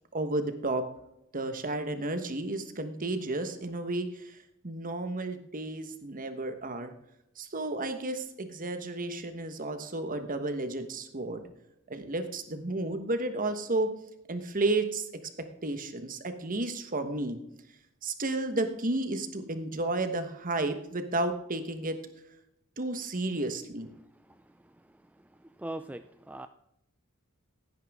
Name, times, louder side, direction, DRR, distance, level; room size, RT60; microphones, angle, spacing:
voice 1, 0.1-0.8 1.3-4.4 4.6-6.9 7.4-11.4 11.9-13.9 14.3-15.1 15.6-17.4 18.0-22.0 22.8-23.9, right 2 dB, 40° right, 8 dB, 1.3 m, -32 dB
voice 2, 24.3-24.7 25.4-26.5, right 1 dB, 5° right, 9 dB, 0.3 m, -41 dB
16.0 x 9.5 x 3.6 m, 0.81 s
head